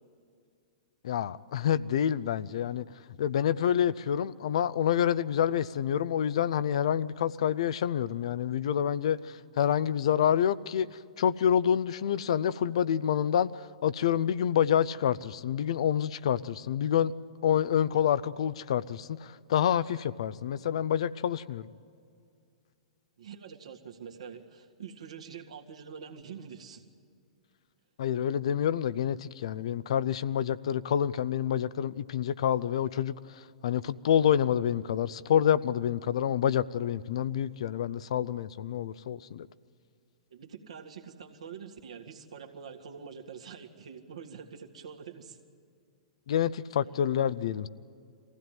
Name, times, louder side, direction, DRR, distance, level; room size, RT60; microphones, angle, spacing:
voice 1, 1.0-2.8 3.2-9.2 9.6-17.1 17.4-21.6 28.0-33.1 33.6-39.5 46.3-47.7, left 9 dB, 65° left, 16 dB, 0.6 m, -27 dB
voice 2, 23.2-26.8 40.3-45.4, right 7 dB, 70° right, 2 dB, 2.0 m, -45 dB
22.5 x 16.0 x 9.2 m, 2.3 s
hypercardioid pair, 110°, 3 cm